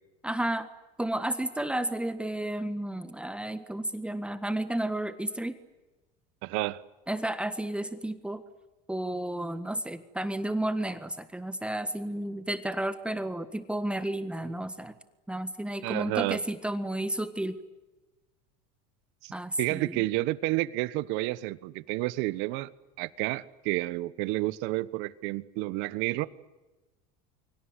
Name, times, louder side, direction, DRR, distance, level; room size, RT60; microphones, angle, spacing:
voice 1, 0.2-0.7 1.0-5.6 7.1-8.4 8.9-14.9 15.3-17.5 19.3-20.0, right 1 dB, 5° right, 10 dB, 1.6 m, -32 dB
voice 2, 6.4-6.8 15.8-16.4 19.2-22.7 23.0-26.3, right 19 dB, 65° right, 17 dB, 1.3 m, -30 dB
29.0 x 24.5 x 8.1 m, 1.1 s
supercardioid pair, 120°, 20 cm